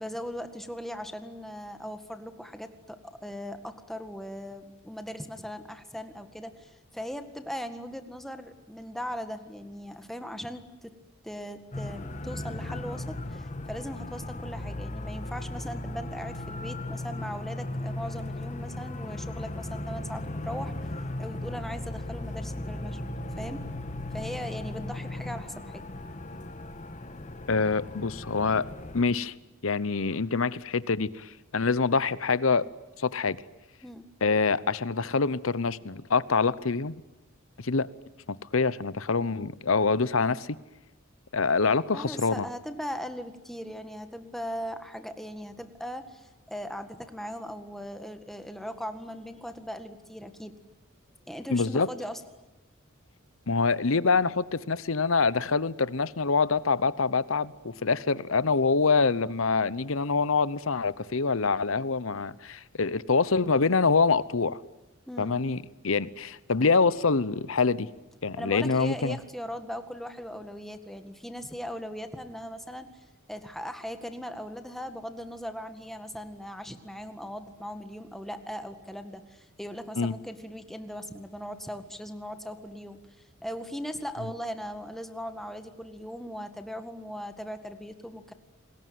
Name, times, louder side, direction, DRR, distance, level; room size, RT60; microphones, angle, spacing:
voice 1, 0.0-11.0 11.2-20.7 21.2-23.7 24.1-25.9 33.8-34.1 41.9-50.5 51.3-52.2 65.1-65.4 68.4-72.9 73.3-83.0 83.4-88.3, equal, ahead, 1.9 m, -39 dB
sound 1, 11.7-29.0, left 1 dB, 35° left, 1.5 m, -37 dB
voice 2, 27.5-28.7 28.9-29.3 29.6-32.7 33.0-33.4 34.2-36.9 37.6-37.9 38.3-40.5 41.3-42.5 51.5-51.9 53.5-64.6 65.2-67.9 68.2-69.2 80.0-80.1, left 4 dB, 75° left, 0.9 m, -25 dB
28.5 x 21.0 x 9.5 m
head